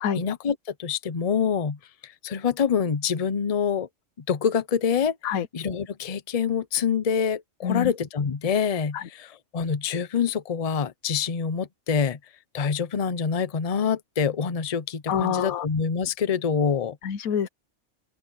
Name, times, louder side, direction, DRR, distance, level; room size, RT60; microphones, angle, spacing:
voice 1, 0.1-3.9 4.3-12.2 12.5-17.0, left 6 dB, 35° left, 0.7 m, -26 dB
voice 2, 15.1-15.6 17.0-17.5, left 8 dB, 85° left, 1.3 m, -26 dB
open air
omnidirectional pair, 1.4 m